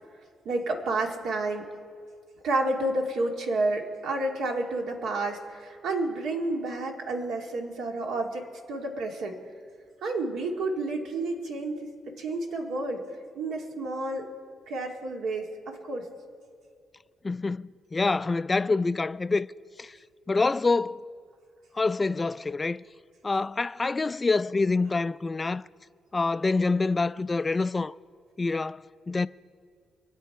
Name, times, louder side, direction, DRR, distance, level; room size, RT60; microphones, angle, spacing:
voice 1, 0.5-1.7 2.4-9.4 10.0-13.0 13.4-14.3 14.7-16.1, right 2 dB, 75° right, 2.0 m, -30 dB
voice 2, 17.2-19.5 19.8-20.0 20.3-21.0 21.7-22.8 23.2-25.6 26.1-27.9 28.4-29.3, left 3 dB, 25° left, 0.3 m, -26 dB
25.5 x 9.3 x 4.7 m
cardioid pair, 90°, 0 cm